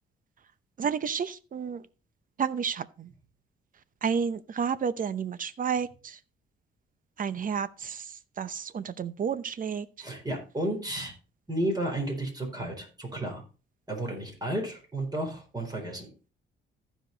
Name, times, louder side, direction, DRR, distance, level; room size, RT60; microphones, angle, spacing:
voice 1, 0.8-1.8 2.4-3.1 4.0-6.2 7.2-10.1, right 7 dB, 45° right, 0.7 m, -31 dB
voice 2, 10.0-11.1 11.5-13.4 13.9-16.1, right 1 dB, 20° right, 4.2 m, -32 dB
15.0 x 5.1 x 3.9 m
cardioid pair, 90°, 20 cm